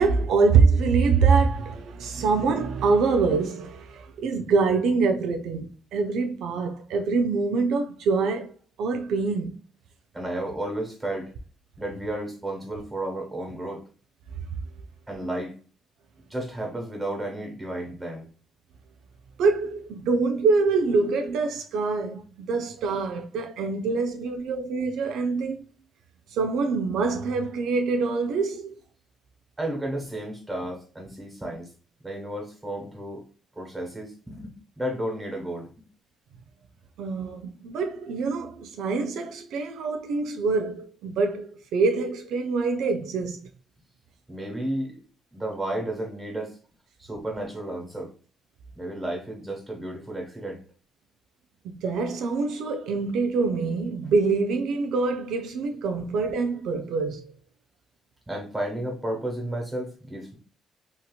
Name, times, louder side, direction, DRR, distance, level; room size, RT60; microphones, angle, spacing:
voice 1, 0.0-9.6 19.4-25.6 26.3-28.7 37.0-43.4 51.6-57.2, right 4 dB, 80° right, 0.4 m, -25 dB
voice 2, 10.1-11.3 11.8-13.8 15.1-15.5 16.3-18.3 29.6-31.7 32.0-33.3 33.6-35.8 44.3-45.0 45.3-46.6 47.0-48.1 48.7-50.6 58.3-60.4, right 1 dB, 20° right, 1.4 m, -32 dB
2.8 x 2.8 x 2.3 m
cardioid pair, 90°, 0 cm